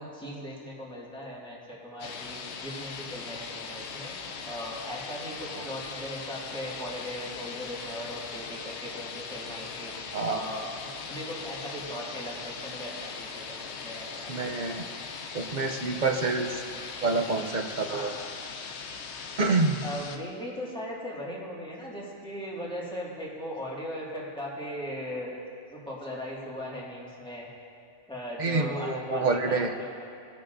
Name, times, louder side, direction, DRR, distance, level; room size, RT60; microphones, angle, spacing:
voice 1, 0.0-4.1 4.4-9.9 10.2-10.7 11.1-14.5 17.9-18.3 19.8-25.4 25.7-27.5 28.1-30.0, equal, 5° left, -6 dB, 1.9 m, -38 dB
sound 1, 2.0-20.2, left 5 dB, 65° left, 0.9 m, -40 dB
voice 2, 14.3-14.8 15.3-16.6 17.0-18.1 19.4-19.8 28.4-29.7, right 3 dB, 50° right, 4 dB, 0.6 m, -27 dB
19.5 x 6.7 x 2.6 m, 2.3 s
omnidirectional pair, 1.3 m